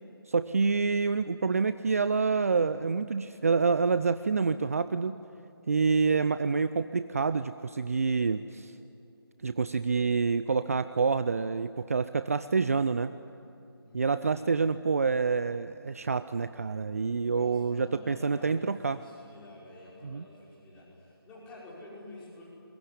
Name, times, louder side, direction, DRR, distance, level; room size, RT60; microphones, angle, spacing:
voice 1, 0.3-5.2 5.7-8.7 9.4-13.1 13.9-19.0 20.0-20.3, right 4 dB, 35° right, 13 dB, 0.5 m, -27 dB
voice 2, 13.8-14.4 17.3-18.7 18.9-22.5, left 1 dB, 10° left, -7 dB, 5.5 m, -49 dB
24.0 x 22.0 x 9.9 m, 2.8 s
figure-of-eight pair, 155°, 13 cm